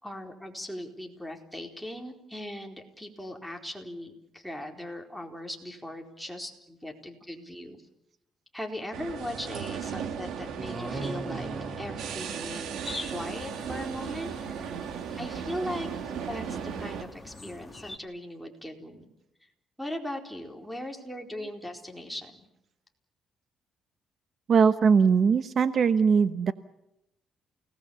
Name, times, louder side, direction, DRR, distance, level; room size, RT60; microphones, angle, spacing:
voice 1, 0.0-7.8 8.5-11.5 11.8-12.7 13.1-14.3 15.2-16.4 16.8-19.1 19.8-22.5, left 1 dB, ahead, 4 dB, 4.3 m, -39 dB
sound 1, 8.9-17.0, right 7 dB, 80° right, 2.5 m, -36 dB
sound 2, 10.6-13.1, right 2 dB, 20° right, 1.9 m, -39 dB
sound 3, 12.8-18.0, left 3 dB, 20° left, 2.5 m, -44 dB
voice 2, 24.5-26.5, right 6 dB, 55° right, 12 dB, 1.0 m, -21 dB
29.5 x 19.0 x 7.1 m, 0.87 s
cardioid pair, 90°, 0 cm